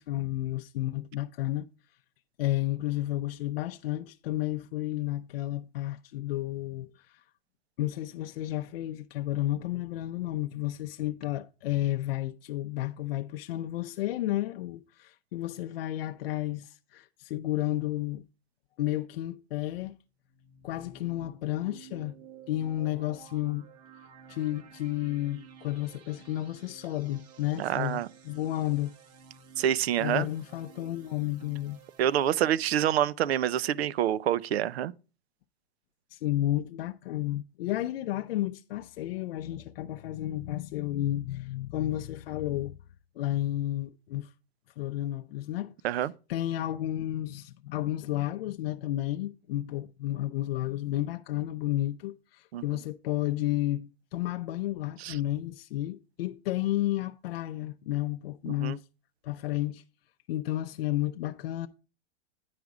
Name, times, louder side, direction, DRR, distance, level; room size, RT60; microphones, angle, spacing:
voice 1, 0.0-1.7 2.4-7.2 7.8-18.2 18.8-19.9 20.6-22.1 22.5-23.7 24.0-28.9 30.0-31.8 36.1-42.8 43.2-44.3 44.8-45.7 46.3-58.8 59.2-59.8 60.3-61.7, left 15 dB, 65° left, 0.5 m, -32 dB
sound 1, 20.1-32.7, right 6 dB, 40° right, 1.4 m, -53 dB
voice 2, 27.6-28.1 29.6-30.3 32.0-34.9 45.8-46.1 52.5-52.6 55.0-55.2 58.5-58.8, right 11 dB, 85° right, 0.6 m, -27 dB
9.5 x 5.1 x 4.8 m
supercardioid pair, 155°, 31 cm